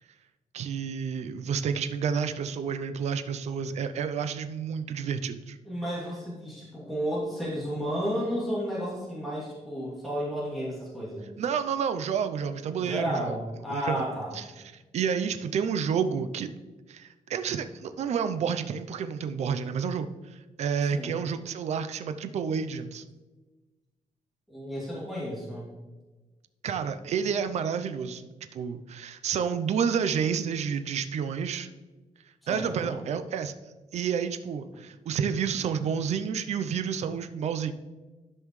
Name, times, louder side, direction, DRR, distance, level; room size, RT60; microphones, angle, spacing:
voice 1, 0.5-5.6 11.4-13.4 13.7-14.0 14.3-16.5 16.9-23.0 26.6-31.7 32.5-33.5 33.9-37.7, right 7 dB, 60° right, 10 dB, 0.5 m, -30 dB
voice 2, 5.6-11.3 12.8-14.3 20.9-21.2 24.5-25.7 32.4-33.0, equal, ahead, -8 dB, 2.7 m, -32 dB
13.0 x 5.4 x 3.2 m, 1.2 s
wide cardioid pair, 175°, 13 cm